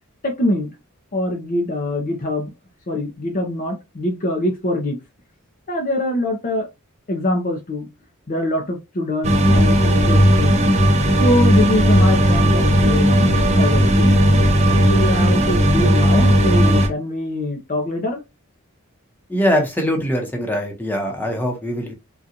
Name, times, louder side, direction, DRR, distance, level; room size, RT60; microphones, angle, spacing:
voice 1, 0.2-0.7 1.1-2.5 2.9-5.0 5.7-6.7 7.1-7.9 8.3-9.8 10.1-10.6 11.2-14.2 14.9-18.2, left 1 dB, 40° left, 0.6 m, -23 dB
sound 1, 9.2-16.9, equal, 30° right, 0.6 m, -15 dB
voice 2, 19.3-21.9, equal, 10° left, 0.9 m, -22 dB
3.7 x 2.4 x 2.8 m
head